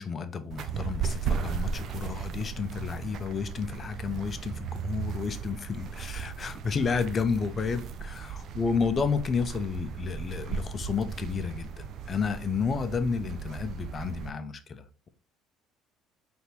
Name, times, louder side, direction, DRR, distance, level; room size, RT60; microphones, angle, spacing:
voice 1, 0.0-15.1, left 5 dB, 40° left, 0.6 m, -31 dB
sound 1, 0.5-14.3, right 7 dB, 55° right, 0.5 m, -36 dB
4.0 x 3.4 x 2.9 m
hypercardioid pair, 70°, 0 cm